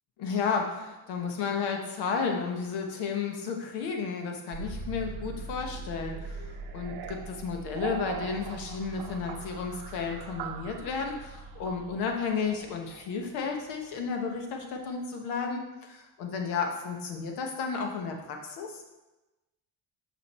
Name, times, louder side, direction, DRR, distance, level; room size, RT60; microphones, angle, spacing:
voice 1, 0.2-18.8, left 5 dB, 90° left, 3 dB, 1.2 m, -33 dB
sound 1, 4.5-14.5, right 4 dB, 70° right, 0.7 m, -41 dB
5.5 x 5.2 x 4.2 m, 1.1 s
cardioid pair, 95°, 39 cm